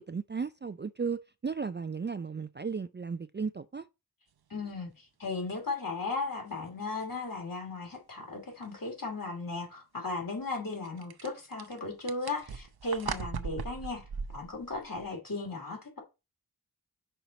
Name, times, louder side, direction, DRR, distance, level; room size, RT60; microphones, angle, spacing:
voice 1, 0.0-3.9, right 5 dB, 30° right, 0.3 m, -35 dB
voice 2, 4.5-14.0 14.3-16.0, left 3 dB, 60° left, 2.7 m, -36 dB
sound 1, 5.5-5.6 6.3-6.4 6.9-7.0 8.6-8.8 10.8-15.1, right 6 dB, 75° right, 0.7 m, -39 dB
5.6 x 4.4 x 5.1 m
wide cardioid pair, 65°, 38 cm